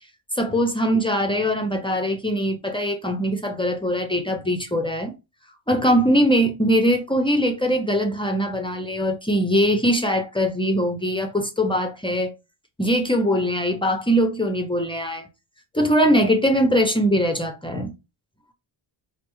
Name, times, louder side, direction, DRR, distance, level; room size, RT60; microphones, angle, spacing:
voice 1, 0.4-5.1 5.7-12.3 12.8-15.3 15.7-17.9, equal, 10° left, 0.5 m, -21 dB
4.4 x 2.0 x 3.0 m
cardioid pair, 120°, 48 cm